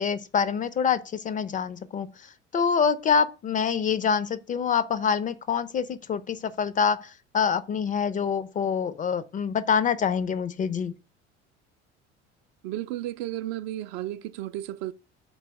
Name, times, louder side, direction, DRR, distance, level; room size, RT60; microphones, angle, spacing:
voice 1, 0.0-10.9, left 6 dB, 25° left, 0.4 m, -26 dB
voice 2, 12.6-14.9, right 14 dB, 50° right, 0.5 m, -33 dB
5.2 x 4.0 x 4.6 m
figure-of-eight pair, 60°, 35 cm